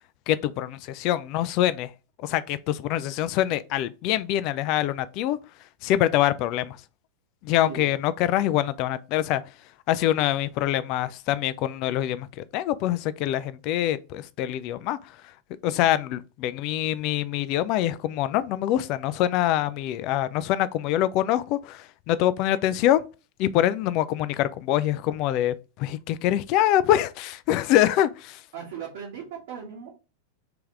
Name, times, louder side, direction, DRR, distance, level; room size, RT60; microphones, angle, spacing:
voice 1, 0.3-1.9 2.2-5.4 5.8-6.8 7.4-9.4 9.9-15.0 15.6-23.0 23.4-28.4, left 12 dB, 40° left, 0.3 m, -25 dB
voice 2, 7.6-7.9 28.5-29.9, right 7 dB, 55° right, 1.2 m, -38 dB
3.5 x 3.3 x 3.2 m
figure-of-eight pair, 90°, 0 cm